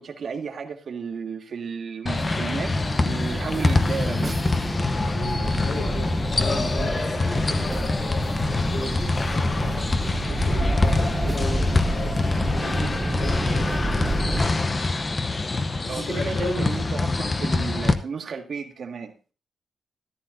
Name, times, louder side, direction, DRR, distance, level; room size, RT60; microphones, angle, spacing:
voice 1, 0.0-4.3 15.9-19.2, right 6 dB, 50° right, 4 dB, 1.7 m, -33 dB
sound 1, 2.1-17.9, left 3 dB, 25° left, 0.8 m, -25 dB
sound 2, 2.2-14.5, right 2 dB, 15° right, 0.9 m, -30 dB
voice 2, 5.1-12.3 12.5-14.9 15.8-16.7, left 2 dB, 65° left, -1 dB, 4.5 m, -35 dB
14.0 x 13.0 x 2.6 m, 0.34 s
wide cardioid pair, 165°, 0 cm